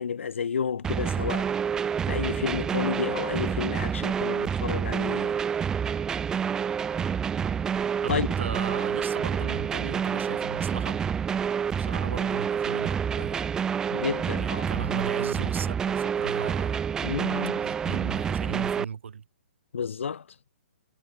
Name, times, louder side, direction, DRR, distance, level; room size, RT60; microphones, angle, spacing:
voice 1, 0.0-1.5 2.1-5.4 8.1-8.3 13.9-14.7 17.0-17.7 19.7-20.3, left 6 dB, 80° left, 3.9 m, -31 dB
sound 1, 0.8-18.8, right 7 dB, 10° right, 0.8 m, -28 dB
voice 2, 8.0-11.0 11.8-13.5 14.4-16.8 17.6-19.2, right 7 dB, 75° right, 2.3 m, -37 dB
hypercardioid pair, 160°, 7 cm